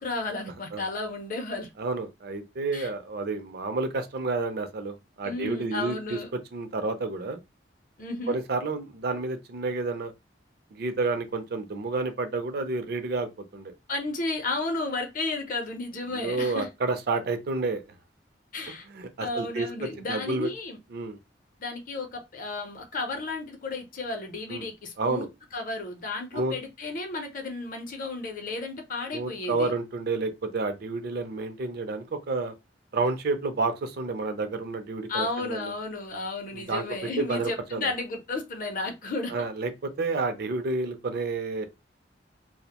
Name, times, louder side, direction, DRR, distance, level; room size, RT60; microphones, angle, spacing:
voice 1, 0.0-1.7 2.7-2.9 5.2-6.3 8.0-8.4 13.9-16.7 18.5-18.9 19.2-20.8 21.6-25.3 25.5-29.7 35.1-39.3, left 3 dB, 50° left, 0.6 m, -33 dB
voice 2, 1.8-7.4 8.3-10.1 10.7-13.7 16.1-17.8 18.7-20.5 20.9-21.2 24.5-24.7 25.0-25.3 26.3-26.5 29.1-32.5 32.9-35.7 36.5-36.8 37.2-37.9 39.3-41.7, right 3 dB, 60° right, 0.4 m, -30 dB
2.4 x 2.0 x 2.8 m
head